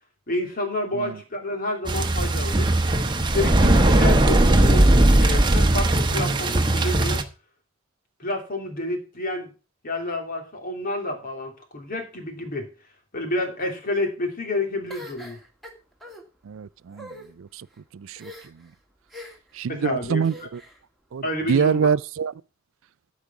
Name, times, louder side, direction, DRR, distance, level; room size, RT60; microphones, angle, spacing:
voice 1, 0.3-2.7 3.3-7.2 8.2-9.5 9.8-12.7 13.1-15.4 19.7-20.5 21.2-21.9, left 2 dB, 45° left, 2.9 m, -29 dB
sound 1, 1.9-7.2, right 1 dB, 25° right, 1.1 m, -18 dB
sound 2, 14.9-16.2 16.9-17.3 18.2-18.7 19.1-19.5 20.2-20.8, left 1 dB, ahead, 2.3 m, -42 dB
voice 2, 16.5-17.1 17.4-17.6 17.9-18.3 19.6-20.6 21.1-21.2 21.5-22.3, right 6 dB, 70° right, 0.4 m, -25 dB
13.5 x 5.1 x 5.8 m
head